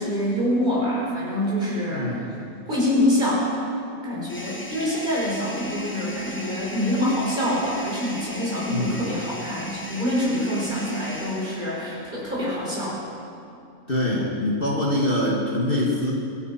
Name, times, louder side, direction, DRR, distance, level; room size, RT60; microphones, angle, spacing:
voice 1, 0.0-2.2 2.7-3.5 4.0-13.0, left 1 dB, 30° right, -6 dB, 5.5 m, -25 dB
voice 2, 1.9-2.2 8.7-9.1 13.9-16.1, left 1 dB, 40° left, -3 dB, 2.0 m, -24 dB
sound 1, 4.3-12.0, left 1 dB, 10° left, 1.2 m, -38 dB
25.0 x 9.9 x 5.9 m, 2.6 s
omnidirectional pair, 1.5 m